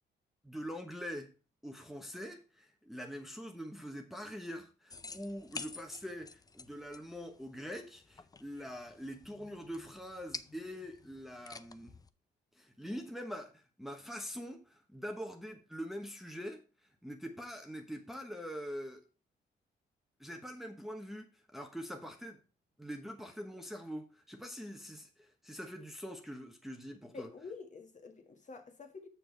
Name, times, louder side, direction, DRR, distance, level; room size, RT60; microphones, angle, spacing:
voice 1, 0.4-1.3 1.6-12.0 12.6-16.6 17.0-19.1 20.2-22.4 22.8-27.3, equal, ahead, 1.1 m, -44 dB
sound 1, 4.9-12.1, left 4 dB, 20° left, 0.5 m, -49 dB
voice 2, 27.1-29.1, left 4 dB, 40° left, 1.6 m, -48 dB
7.0 x 6.1 x 4.5 m
cardioid pair, 90°, 20 cm